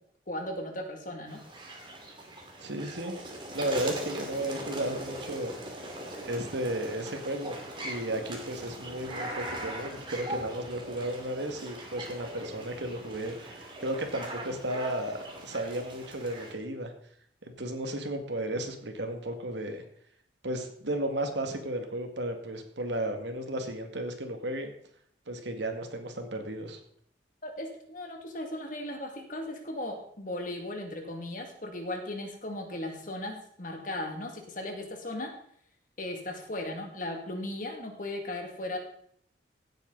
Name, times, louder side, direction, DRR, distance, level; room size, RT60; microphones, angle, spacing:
voice 1, 0.3-1.4 27.4-35.3 36.0-38.8, left 1 dB, 45° left, 3 dB, 2.3 m, -37 dB
sound 1, 1.3-16.5, right 1 dB, 25° right, 2.5 m, -40 dB
voice 2, 2.6-3.1 3.5-5.5 6.2-16.9 17.6-19.8 20.4-24.7 25.3-26.8, right 1 dB, 70° right, 5 dB, 2.0 m, -34 dB
16.5 x 9.1 x 4.0 m, 0.64 s
head